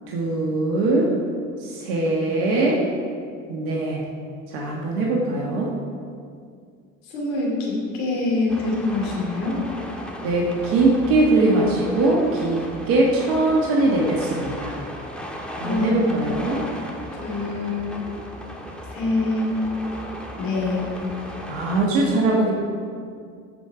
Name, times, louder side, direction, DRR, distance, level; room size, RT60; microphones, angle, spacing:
voice 1, 0.1-1.1 1.6-2.8 3.5-4.0 4.5-5.7 10.2-14.7 15.6-16.6 21.5-22.5, right 2 dB, 75° right, -2 dB, 1.5 m, -21 dB
voice 2, 7.0-9.6 15.6-16.4 17.2-18.1 18.9-19.6 20.4-21.0, left 2 dB, 80° left, -3 dB, 2.5 m, -25 dB
sound 1, 8.5-21.9, equal, 5° left, 1.6 m, -36 dB
14.0 x 5.1 x 4.9 m, 2.2 s
hypercardioid pair, 65°, 38 cm